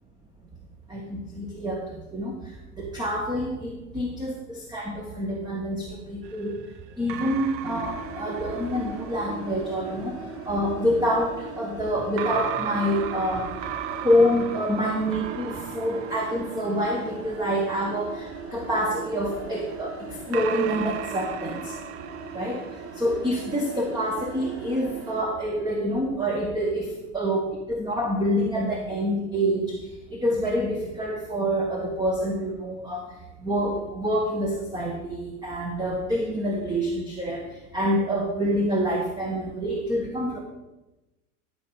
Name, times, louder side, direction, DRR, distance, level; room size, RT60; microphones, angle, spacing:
voice 1, 0.9-1.8 2.1-2.4 2.8-6.5 7.0-10.2 10.5-13.5 14.0-20.0 20.3-21.7 22.3-22.6 23.0-29.8 30.1-33.1 33.4-37.4 37.7-40.4, equal, 10° right, 0 dB, 1.4 m, -27 dB
sound 1, 6.2-9.7 12.2-17.6 18.7-23.4, right 11 dB, 50° right, 0.8 m, -37 dB
sound 2, 7.6-25.2, right 3 dB, 30° right, 2.0 m, -39 dB
12.5 x 5.0 x 5.5 m, 1.0 s
figure-of-eight pair, 85°, 47 cm